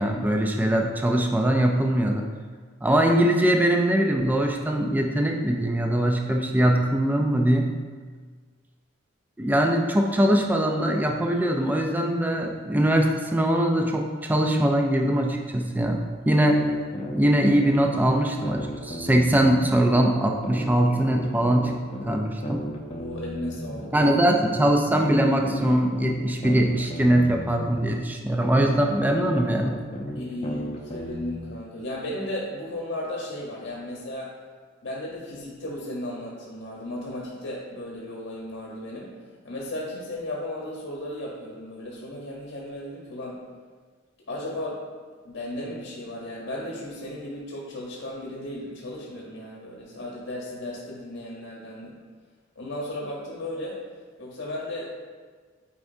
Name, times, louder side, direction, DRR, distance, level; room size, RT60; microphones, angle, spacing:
voice 1, 0.0-2.3 2.8-7.7 9.4-16.6 17.1-21.7 22.1-22.7 23.9-29.8, right 1 dB, 10° right, 2 dB, 0.4 m, -22 dB
sound 1, 16.4-19.9 20.4-23.9 24.4-27.9 28.4-31.4, equal, 30° left, 0.7 m, -34 dB
voice 2, 22.9-23.9 30.1-34.4 34.8-39.2 39.4-43.4 44.3-44.8 45.2-52.0 52.6-53.8 54.2-54.9, left 1 dB, 65° left, -4 dB, 1.0 m, -35 dB
8.5 x 4.6 x 2.7 m, 1.5 s
head